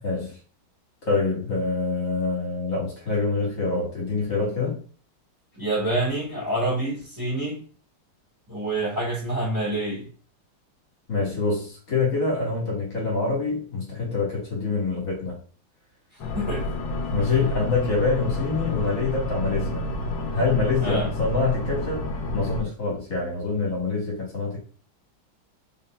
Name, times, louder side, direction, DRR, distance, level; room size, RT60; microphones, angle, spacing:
voice 1, 0.0-0.3 1.0-4.8 11.1-15.4 17.1-19.9 20.3-22.1 22.3-24.6, left 4 dB, 45° left, 1.6 m, -25 dB
voice 2, 5.5-7.6 8.5-10.1 16.3-16.7 20.8-21.1, right 1 dB, 10° right, 1.2 m, -27 dB
sound 1, 16.2-22.6, left 1 dB, 75° left, 1.3 m, -30 dB
4.1 x 3.7 x 2.2 m
omnidirectional pair, 2.3 m